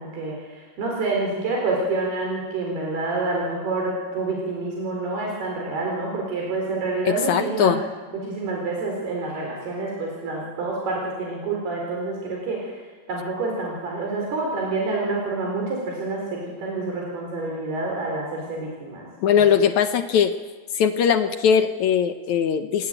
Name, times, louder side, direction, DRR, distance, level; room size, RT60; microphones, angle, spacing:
voice 1, 0.0-7.8 8.2-12.8 13.1-19.1 19.3-19.6, right 3 dB, 80° right, -1 dB, 6.5 m, -28 dB
voice 2, 7.1-7.8 19.2-20.3 20.7-22.9, left 8 dB, 70° left, 8 dB, 1.8 m, -20 dB
27.5 x 19.0 x 9.2 m, 1.4 s
omnidirectional pair, 4.5 m